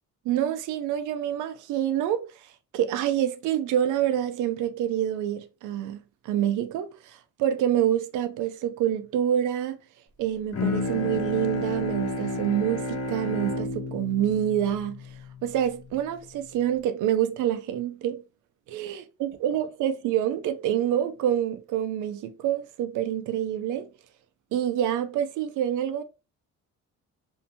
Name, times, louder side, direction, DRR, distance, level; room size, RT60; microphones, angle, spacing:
voice 1, 0.2-6.0 6.2-9.8 10.2-15.1 15.4-18.2 18.7-23.9 24.5-26.0, right 10 dB, 80° right, 0.5 m, -27 dB
Bowed string instrument, 10.5-16.0, left 2 dB, 55° left, 0.8 m, -31 dB
2.7 x 2.1 x 2.8 m
cardioid pair, 90°, 30 cm